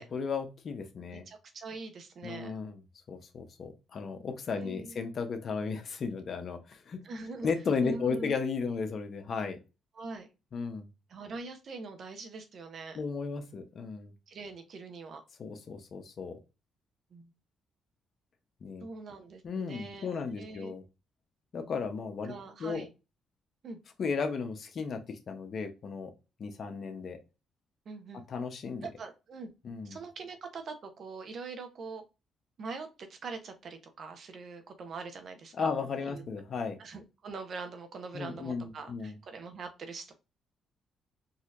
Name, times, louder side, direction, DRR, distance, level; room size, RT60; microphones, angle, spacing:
voice 1, 0.0-1.2 2.2-2.8 3.1-7.0 7.4-9.6 10.5-10.9 12.9-14.1 15.4-16.4 18.6-18.9 19.4-20.8 21.5-22.3 22.6-22.8 24.0-25.0 25.3-26.1 26.4-27.2 28.3-28.9 29.6-30.0 35.6-36.8 38.1-39.2, left 5 dB, 55° left, 6 dB, 0.8 m, -34 dB
voice 2, 1.1-2.5 4.5-5.0 7.0-7.5 7.8-8.4 9.9-10.3 11.1-13.0 14.3-15.2 17.1-17.3 18.8-20.7 22.2-22.9 23.6-23.8 27.8-28.2 28.8-29.5 29.8-32.0 32.6-36.2 36.8-40.1, right 4 dB, 55° right, 6 dB, 0.8 m, -43 dB
4.1 x 2.8 x 2.5 m, 0.28 s
cardioid pair, 90°, 0 cm